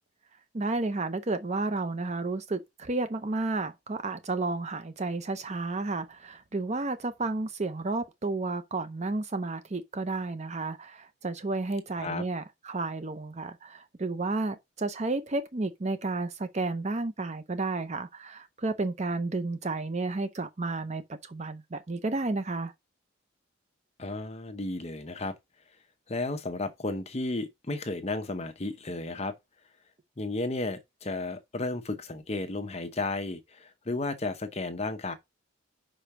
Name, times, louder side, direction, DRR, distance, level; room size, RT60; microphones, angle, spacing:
voice 1, 0.5-22.7, right 3 dB, 35° right, 0.6 m, -32 dB
voice 2, 24.0-25.3 26.1-29.3 30.2-35.1, left 2 dB, 30° left, 0.8 m, -33 dB
5.5 x 5.1 x 5.9 m
head